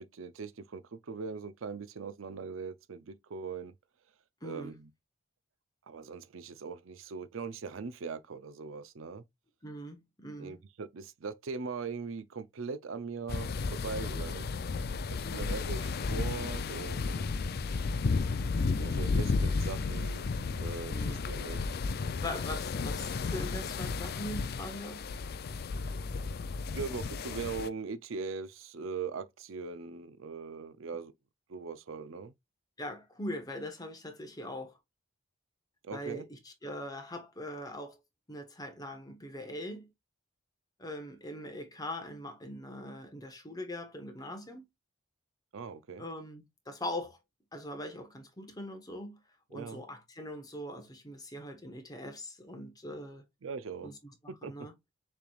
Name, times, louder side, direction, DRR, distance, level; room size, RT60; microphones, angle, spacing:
voice 1, 0.0-3.7 4.4-4.9 5.9-9.2 10.4-14.5 15.1-17.3 18.8-21.7 26.7-31.1 31.5-32.3 35.8-36.2 45.5-46.1 49.5-49.8 53.4-53.9 54.3-54.5, right 5 dB, 65° right, 0.5 m, -40 dB
voice 2, 4.4-4.8 9.6-10.6 15.2-15.6 20.9-21.3 22.1-25.1 32.8-34.8 35.9-38.0 38.3-39.9 40.8-44.6 46.0-47.2 47.5-49.2 49.5-53.2 53.8-54.0 54.2-54.7, left 1 dB, 20° left, 1.2 m, -41 dB
sound 1, 13.3-27.7, left 4 dB, 45° left, 0.4 m, -33 dB
6.8 x 3.3 x 2.4 m
head